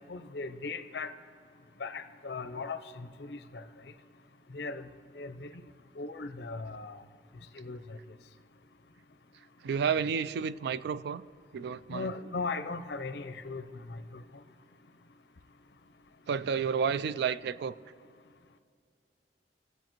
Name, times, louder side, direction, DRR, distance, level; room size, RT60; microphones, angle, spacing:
voice 1, 0.1-1.1 1.8-3.6 4.5-4.9 5.1-5.5 6.0-7.0 7.5-8.0 11.9-14.2, left 3 dB, 70° left, 0.6 m, -38 dB
voice 2, 9.6-11.2 11.5-12.1 16.3-17.7, right 6 dB, 65° right, 0.3 m, -31 dB
22.5 x 8.0 x 3.0 m
head